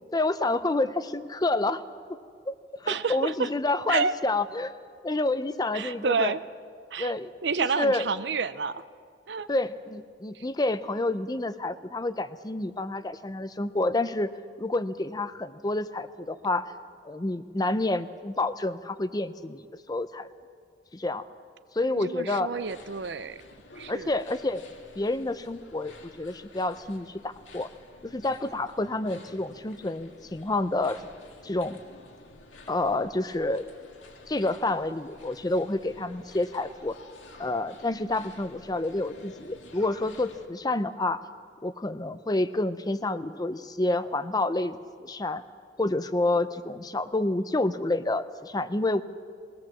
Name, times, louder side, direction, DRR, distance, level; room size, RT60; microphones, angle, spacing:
voice 1, 0.1-1.8 2.5-2.6 2.8-4.8 5.0-6.3 7.0-7.3 7.8-8.1 9.5-14.3 14.6-16.7 17.0-19.6 19.9-20.3 20.9-21.2 21.7-22.5 23.9-24.6 25.0-27.7 28.0-31.0 31.4-31.8 32.7-33.7 34.3-36.9 37.4-41.2 41.6-45.4 45.8-49.0, left 2 dB, 20° left, 12 dB, 0.6 m, -28 dB
voice 2, 2.9-3.5 3.9-4.1 5.7-6.4 6.9-7.1 7.4-8.8 9.3-9.5 10.3-10.4 21.9-23.4 23.8-24.1, right 5 dB, 65° right, 14 dB, 0.6 m, -29 dB
sound 1, 22.5-40.5, left 2 dB, 85° left, 2.1 m, -51 dB
21.5 x 17.5 x 7.2 m, 2.2 s
head